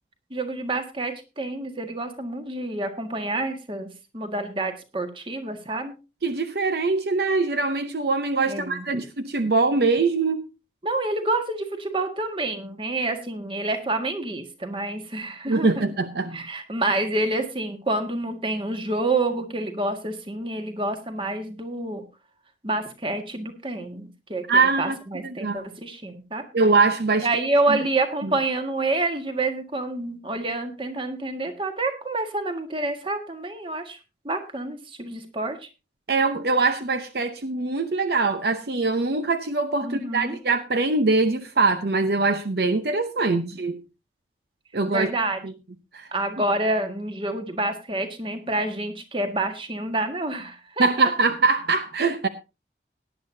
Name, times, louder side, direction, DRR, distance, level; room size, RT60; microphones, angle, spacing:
voice 1, 0.3-5.9 8.5-9.0 10.8-15.8 16.3-22.0 22.6-26.4 27.2-34.0 34.2-35.6 39.8-40.4 43.2-43.6 44.9-45.4 46.1-50.9, right 2 dB, 30° right, 1.6 m, -28 dB
voice 2, 6.2-10.4 15.5-16.4 24.5-25.0 25.2-25.6 26.5-27.3 27.7-27.8 28.2-28.3 36.1-43.8 44.7-45.1 45.4-45.5 45.9-46.1 50.8-52.3, right 3 dB, 65° right, 0.8 m, -23 dB
18.0 x 10.0 x 2.7 m
head